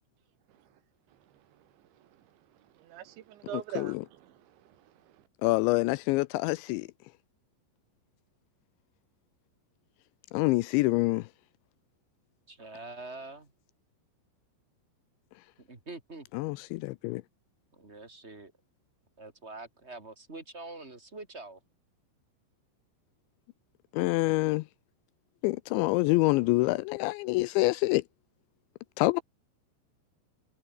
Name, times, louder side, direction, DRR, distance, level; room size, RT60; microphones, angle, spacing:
voice 1, 0.5-0.8 1.1-5.3, right 12 dB, 75° right, 3.9 m, -46 dB
voice 2, 5.4-6.9 10.3-11.3 16.3-17.2 23.9-24.6 25.4-28.0 29.0-29.2, left 21 dB, 85° left, 2.7 m, -26 dB
voice 3, 12.5-13.5 15.6-16.3 17.7-18.5 19.2-21.6, right 2 dB, 15° right, 2.9 m, -45 dB
omnidirectional pair, 5.5 m